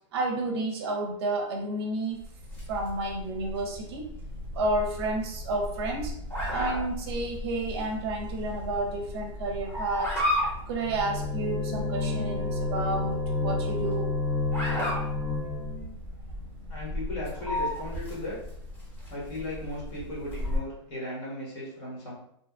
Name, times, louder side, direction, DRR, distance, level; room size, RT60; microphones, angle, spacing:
voice 1, 0.1-2.2 2.7-4.0 4.5-6.1 6.5-10.2 10.7-14.1, right 2 dB, 50° right, 2 dB, 0.6 m, -31 dB
sound 1, 2.2-20.6, left 1 dB, 10° left, 1.0 m, -35 dB
sound 2, 10.8-15.9, left 3 dB, 70° left, 1.4 m, -30 dB
voice 2, 16.7-18.4 19.1-22.1, left 1 dB, 40° left, -5 dB, 1.2 m, -36 dB
2.7 x 2.4 x 2.3 m, 0.72 s
hypercardioid pair, 150°, 17 cm